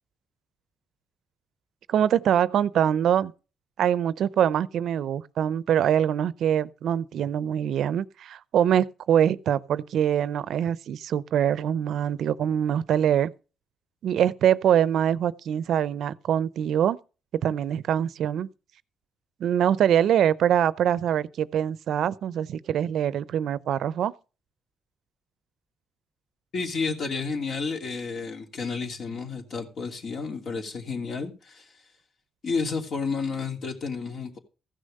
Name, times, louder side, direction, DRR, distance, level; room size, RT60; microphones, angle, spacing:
voice 1, 1.9-3.3 3.8-13.3 14.0-17.0 17.4-18.5 19.4-24.1, right 9 dB, 70° right, 0.6 m, -24 dB
voice 2, 26.5-31.6 32.4-34.4, left 4 dB, 55° left, 2.8 m, -31 dB
15.0 x 6.4 x 6.6 m
cardioid pair, 90°, 0 cm